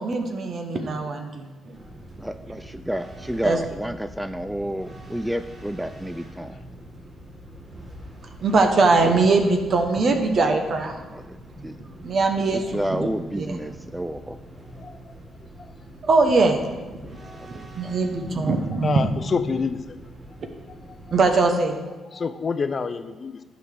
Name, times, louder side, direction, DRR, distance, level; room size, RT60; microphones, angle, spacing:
voice 1, 0.0-1.8 3.4-3.6 8.4-10.9 12.0-12.6 12.9-13.1 13.4-13.6 16.1-16.6 17.0-17.2 17.5-19.1 21.1-21.8, right 3 dB, 55° right, 5 dB, 1.0 m, -21 dB
sound 1, 1.7-21.3, equal, 35° right, 2.0 m, -43 dB
voice 2, 2.2-6.6 11.1-11.4 11.6-11.8 12.5-14.4 16.4-16.5 17.4-18.0, equal, 5° right, 10 dB, 0.4 m, -30 dB
voice 3, 14.8-15.1 17.3-17.4 18.8-20.0 20.7-21.0 22.1-23.4, left 5 dB, 45° left, 11 dB, 0.6 m, -28 dB
11.0 x 4.2 x 6.5 m, 1.2 s
hypercardioid pair, 50°, 0 cm